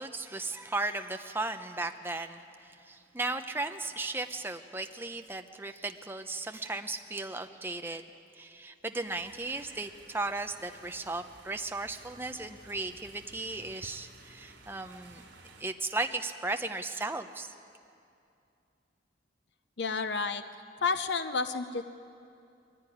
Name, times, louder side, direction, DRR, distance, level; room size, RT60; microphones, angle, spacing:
voice 1, 0.0-8.1 8.3-15.2 15.6-17.5, right 2 dB, 10° right, 6 dB, 0.7 m, -36 dB
sound 1, 9.0-15.6, right 3 dB, 75° right, 3.3 m, -55 dB
voice 2, 19.8-20.4 20.8-21.8, left 4 dB, 65° left, 9 dB, 0.7 m, -30 dB
21.5 x 15.5 x 9.9 m, 2.5 s
head